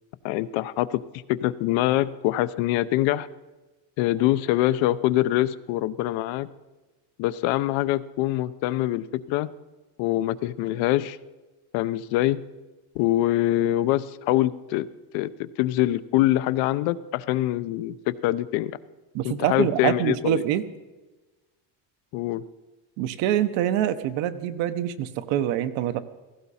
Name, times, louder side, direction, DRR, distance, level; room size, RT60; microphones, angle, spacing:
voice 1, 0.2-1.0 1.3-3.3 4.0-6.5 7.2-9.5 10.0-11.2 11.7-12.4 12.9-14.9 15.1-18.7 19.2-20.5 22.1-22.4, left 15 dB, 75° left, 14 dB, 0.8 m, -24 dB
voice 2, 19.1-20.6 23.0-26.0, right 11 dB, 65° right, 11 dB, 1.0 m, -25 dB
16.5 x 15.5 x 4.2 m, 1.2 s
cardioid pair, 180°, 47 cm